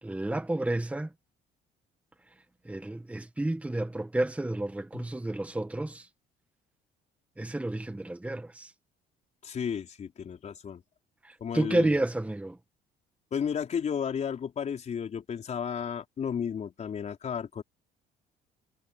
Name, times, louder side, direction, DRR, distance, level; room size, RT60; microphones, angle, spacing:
voice 1, 0.0-1.1 2.6-6.1 7.4-8.7 11.2-12.6, right 1 dB, 10° right, 1.5 m, -30 dB
voice 2, 9.4-10.8 11.4-11.9 13.3-17.6, left 7 dB, 45° left, 4.2 m, -33 dB
cardioid pair, 110°, 17 cm